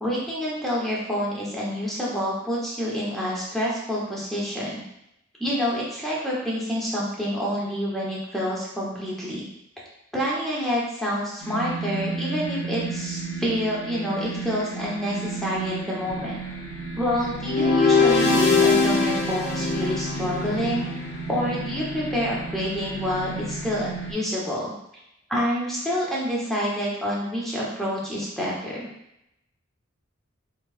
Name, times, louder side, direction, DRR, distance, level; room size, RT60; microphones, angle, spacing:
voice 1, 0.0-4.8 5.4-9.4 10.1-16.3 17.0-20.9 21.3-24.7 25.3-28.9, equal, ahead, -6 dB, 0.9 m, -28 dB
sound 1, 11.4-24.1, right 3 dB, 70° left, 1.3 m, -33 dB
sound 2, 17.4-20.7, left 4 dB, 55° left, 0.5 m, -21 dB
3.8 x 3.0 x 2.4 m, 0.82 s
head